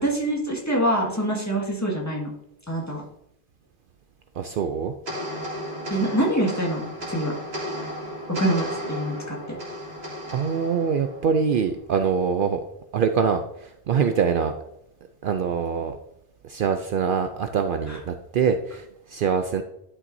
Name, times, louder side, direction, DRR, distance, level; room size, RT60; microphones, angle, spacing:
voice 1, 0.0-2.3 2.7-3.0 5.9-7.3 8.3-9.6 17.9-18.0, right 1 dB, 15° left, -2 dB, 1.8 m, -25 dB
voice 2, 4.4-4.9 10.3-12.6 12.9-14.5 15.2-16.0 16.4-19.6, right 6 dB, 65° right, 7 dB, 0.7 m, -24 dB
sound 1, 5.1-11.7, equal, 80° right, 2.3 m, -34 dB
11.0 x 5.9 x 2.7 m, 0.80 s
omnidirectional pair, 1.1 m